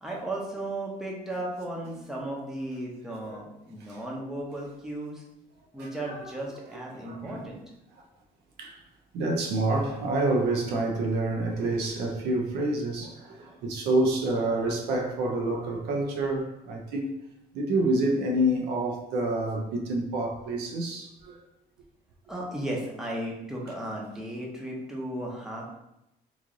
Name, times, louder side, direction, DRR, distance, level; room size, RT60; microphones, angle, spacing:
voice 1, 0.0-5.2 5.7-7.6 13.4-13.6 22.3-25.8, right 1 dB, 5° right, 0.8 m, -35 dB
voice 2, 5.7-6.3 6.9-7.5 8.6-8.8 9.1-17.1 17.5-21.4, right 1 dB, 80° right, 0.6 m, -28 dB
3.1 x 2.5 x 3.7 m
cardioid pair, 110°, 17 cm